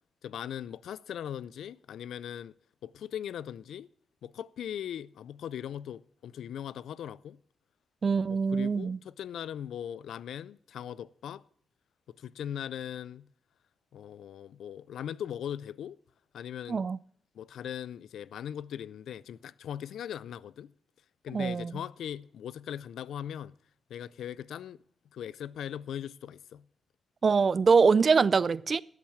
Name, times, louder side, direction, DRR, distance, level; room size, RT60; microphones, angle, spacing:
voice 1, 0.2-2.5 2.8-3.9 4.2-7.4 8.5-11.4 12.2-13.3 13.9-16.0 16.3-16.8 17.3-20.7 21.2-23.5 23.9-24.8 25.1-26.6, left 9 dB, 90° left, 0.4 m, -39 dB
voice 2, 8.0-9.0 16.7-17.0 21.3-21.7 27.2-28.8, right 5 dB, 50° right, 0.4 m, -24 dB
12.5 x 7.4 x 7.1 m
cardioid pair, 80°, 0 cm